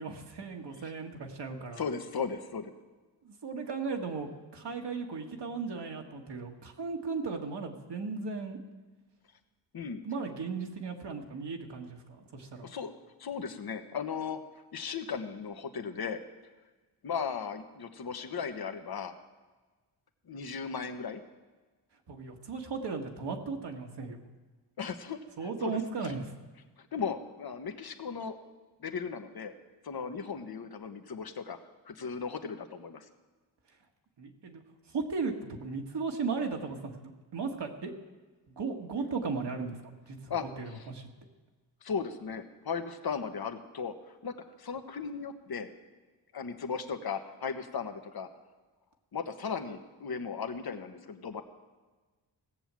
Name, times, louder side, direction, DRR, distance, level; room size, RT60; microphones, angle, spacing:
voice 1, 0.0-1.8 3.2-8.6 10.0-12.7 22.1-24.2 25.4-26.3 34.2-34.6 34.9-37.9 38.6-39.8 40.1-41.1, right 4 dB, 65° right, 2 dB, 1.8 m, -36 dB
voice 2, 1.8-2.7 9.7-10.0 12.6-12.9 13.2-14.4 14.7-16.2 17.0-19.1 20.3-21.2 24.8-26.1 26.8-28.4 28.8-29.5 29.8-31.6 31.9-33.1 40.3-40.8 41.8-45.7 46.3-48.3 49.1-51.4, left 6 dB, 55° left, 7 dB, 1.3 m, -36 dB
17.0 x 7.1 x 7.6 m, 1.3 s
cardioid pair, 65°, 45 cm